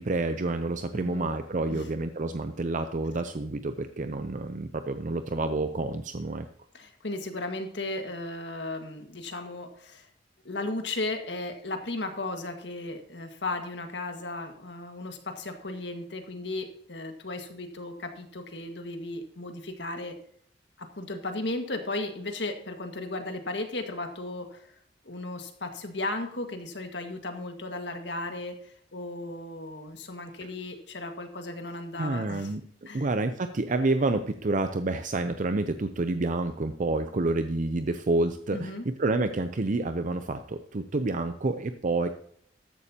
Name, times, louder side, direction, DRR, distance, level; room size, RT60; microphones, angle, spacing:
voice 1, 0.0-6.5 30.4-30.5 32.0-42.1, right 2 dB, 45° right, 9 dB, 0.6 m, -29 dB
voice 2, 0.9-1.3 1.7-1.9 6.7-10.1 10.5-20.2 20.8-24.7 25.0-32.5 32.9-33.1 38.5-38.8, left 2 dB, 70° left, 5 dB, 1.8 m, -35 dB
14.0 x 11.0 x 2.9 m, 0.63 s
head